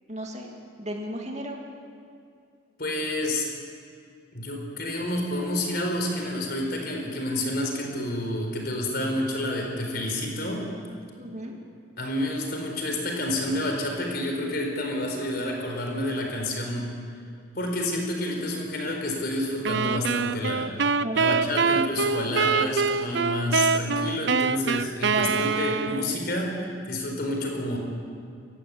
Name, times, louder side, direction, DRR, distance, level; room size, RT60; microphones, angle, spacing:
voice 1, 0.1-1.6 11.2-11.6 21.0-21.4 25.1-25.6, right 1 dB, 35° right, 1 dB, 2.4 m, -34 dB
voice 2, 2.8-3.5 4.3-10.7 12.0-16.9 17.5-20.7 21.1-27.8, left 1 dB, 50° left, 1 dB, 4.5 m, -29 dB
sound 1, 19.7-26.2, right 5 dB, 60° right, 0.6 m, -25 dB
28.5 x 15.0 x 8.5 m, 2.4 s
head